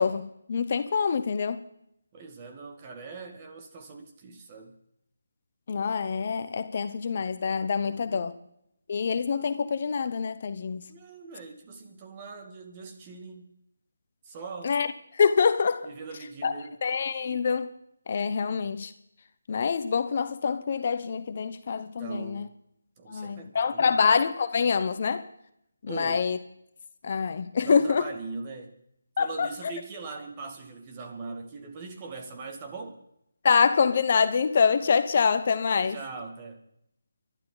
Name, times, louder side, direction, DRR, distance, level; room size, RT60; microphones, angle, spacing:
voice 1, 0.0-1.6 5.7-8.3 8.9-10.8 14.6-14.9 15.2-15.9 16.4-16.5 16.8-17.7 18.1-18.9 19.5-22.5 23.1-25.2 25.8-26.4 27.0-28.0 29.2-29.5 33.4-36.0, left 6 dB, 45° left, 1.0 m, -25 dB
voice 2, 2.1-4.7 7.8-8.4 10.9-13.6 14.2-14.8 15.8-16.8 22.0-22.5 23.0-24.0 25.9-26.3 27.6-28.8 29.2-33.0 35.7-36.6, right 4 dB, 25° right, 2.3 m, -41 dB
29.5 x 12.0 x 4.1 m
figure-of-eight pair, 160°, 0 cm